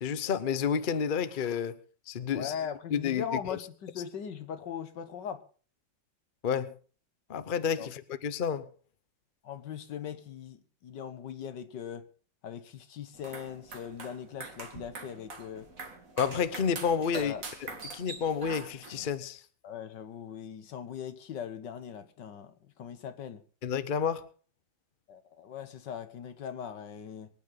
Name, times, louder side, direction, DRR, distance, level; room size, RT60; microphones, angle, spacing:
voice 1, 0.0-1.8 2.1-2.5 2.9-3.2 3.5-3.6 6.4-6.7 7.3-8.7 16.2-17.3 17.6-19.4 23.6-24.3, left 7 dB, 45° left, 0.6 m, -30 dB
voice 2, 2.3-5.4 7.8-7.9 9.4-12.1 12.4-15.7 17.1-17.4 19.6-23.4 25.1-27.3, left 8 dB, 70° left, 1.7 m, -40 dB
sound 1, 13.1-19.1, right 3 dB, 45° right, 2.4 m, -44 dB
24.0 x 9.5 x 3.9 m
omnidirectional pair, 2.0 m